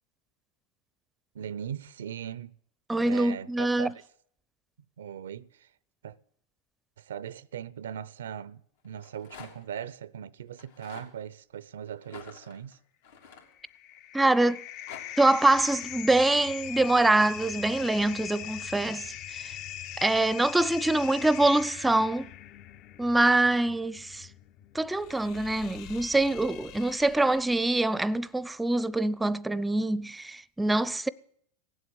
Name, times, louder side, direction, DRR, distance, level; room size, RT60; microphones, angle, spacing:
voice 1, 1.3-2.6 3.0-4.0 5.0-5.7 6.0-6.2 7.0-12.8, right 9 dB, 90° right, 0.5 m, -39 dB
voice 2, 2.9-3.9 14.1-14.6 15.2-19.5 20.0-22.3 23.0-24.3 24.7-31.1, right 2 dB, 10° right, 0.5 m, -25 dB
Rattle, 8.8-9.8 10.5-11.1 12.0-14.0 14.5-15.0, left 7 dB, 85° left, 3.5 m, -48 dB
sound 1, 13.4-28.0, left 11 dB, 55° left, 0.8 m, -42 dB
17.5 x 7.9 x 8.6 m
hypercardioid pair, 105°, 0 cm